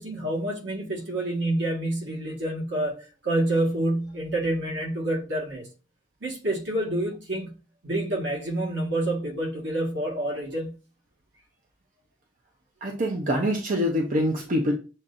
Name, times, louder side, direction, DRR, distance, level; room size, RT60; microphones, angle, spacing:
voice 1, 0.0-5.7 6.2-7.5 7.8-10.7, right 1 dB, 75° right, 1.5 m, -28 dB
voice 2, 12.8-14.7, equal, 45° right, 0.7 m, -25 dB
7.2 x 2.6 x 2.5 m
head